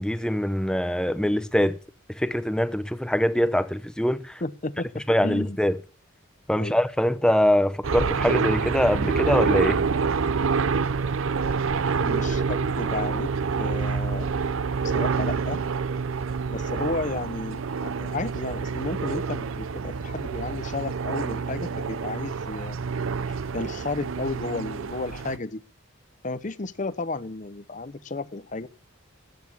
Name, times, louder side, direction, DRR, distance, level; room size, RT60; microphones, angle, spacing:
voice 1, 0.0-1.8 2.1-4.4 5.1-5.8 6.5-9.8, equal, 5° left, 0.7 m, -23 dB
voice 2, 4.4-5.6 6.5-6.8 12.0-13.3 13.6-14.3 14.8-15.6 16.5-22.8 23.3-25.6 26.2-28.7, left 3 dB, 40° left, 0.8 m, -33 dB
sound 1, 7.8-25.4, right 5 dB, 75° right, 0.6 m, -27 dB
14.5 x 10.5 x 6.2 m
head